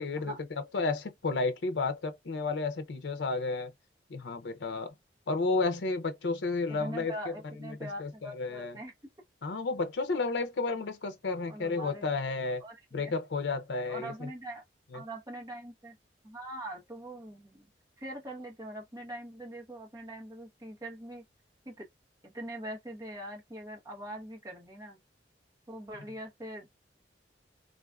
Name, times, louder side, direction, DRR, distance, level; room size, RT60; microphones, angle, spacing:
voice 1, 0.0-3.7 4.1-4.9 5.3-7.1 7.6-8.8 9.4-12.6 12.9-14.3 14.9-15.0, left 3 dB, 80° left, 0.6 m, -32 dB
voice 2, 6.7-8.9 11.5-12.1 12.6-13.1 13.9-14.6 14.9-16.0 16.2-17.7 18.0-21.2 21.6-21.8 22.2-25.0 25.7-26.7, right 1 dB, 20° right, 1.0 m, -42 dB
3.9 x 2.5 x 2.3 m
head